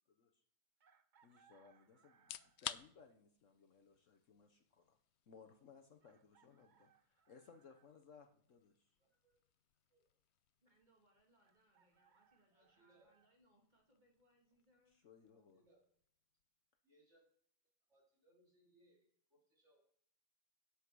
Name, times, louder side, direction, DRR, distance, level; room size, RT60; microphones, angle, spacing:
Chicken rooster, 0.8-2.7 4.4-4.5 6.0-7.9 11.4-13.3, right 7 dB, 60° right, 0.5 m, -73 dB
voice 1, 1.2-5.0 5.3-8.9 14.9-15.6, left 5 dB, 55° left, 5 dB, 1.1 m, -63 dB
sound 1, 2.1-17.0, left 11 dB, 90° left, 0.5 m, -57 dB
voice 2, 9.0-9.4 9.9-10.1 12.5-13.1 15.3-15.8 16.8-17.2 17.9-19.8, right 1 dB, 40° right, -3 dB, 4.2 m, -73 dB
voice 3, 10.6-15.0, equal, 25° right, 0 dB, 2.4 m, -75 dB
8.4 x 8.1 x 6.1 m, 0.63 s
omnidirectional pair, 1.7 m